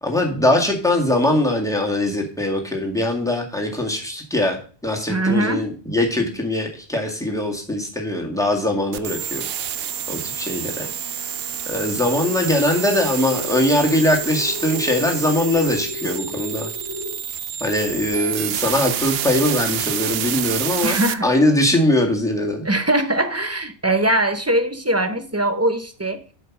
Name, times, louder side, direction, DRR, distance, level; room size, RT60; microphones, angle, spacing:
voice 1, 0.0-4.6 4.8-9.4 10.1-10.9 11.7-16.7 17.6-22.6, left 1 dB, 5° left, 1.9 m, -21 dB
voice 2, 5.1-5.7 20.8-21.3 22.6-26.2, right 1 dB, 15° right, 0.7 m, -21 dB
sound 1, 8.9-21.1, right 10 dB, 75° right, 0.8 m, -28 dB
sound 2, 12.2-17.2, left 2 dB, 35° left, 1.7 m, -34 dB
8.0 x 5.4 x 6.0 m
omnidirectional pair, 1.1 m